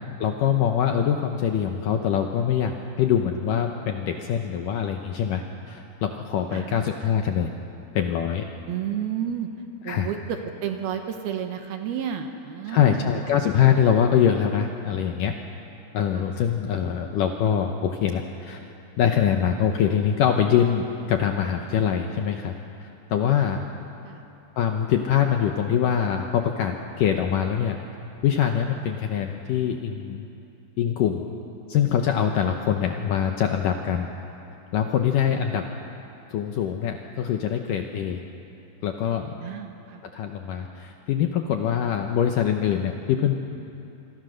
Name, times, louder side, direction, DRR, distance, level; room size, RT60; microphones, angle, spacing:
voice 1, 0.2-7.5 7.9-8.5 9.9-10.1 12.7-15.4 15.9-18.6 19.0-22.5 23.1-23.7 24.6-27.8 28.2-30.2 30.8-31.3 31.7-34.1 34.7-35.7 36.3-38.2 38.8-39.4 40.1-43.3, left 8 dB, 80° left, 4 dB, 2.0 m, -23 dB
voice 2, 6.5-7.1 8.7-9.5 9.8-13.3 16.1-16.3 24.0-24.3 39.4-40.0, right 9 dB, 70° right, 6 dB, 2.7 m, -32 dB
26.0 x 25.0 x 6.5 m, 2.8 s
omnidirectional pair, 5.0 m